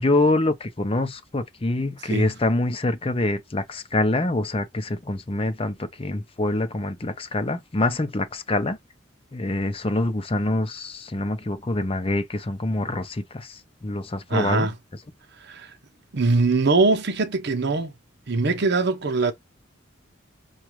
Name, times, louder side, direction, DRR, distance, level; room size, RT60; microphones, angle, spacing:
voice 1, 0.0-8.8 9.3-14.7, left 2 dB, 30° left, 0.6 m, -25 dB
voice 2, 14.3-14.7 15.4-15.7 16.1-17.9 18.3-19.3, right 3 dB, 60° right, 0.8 m, -22 dB
5.9 x 2.4 x 3.0 m
head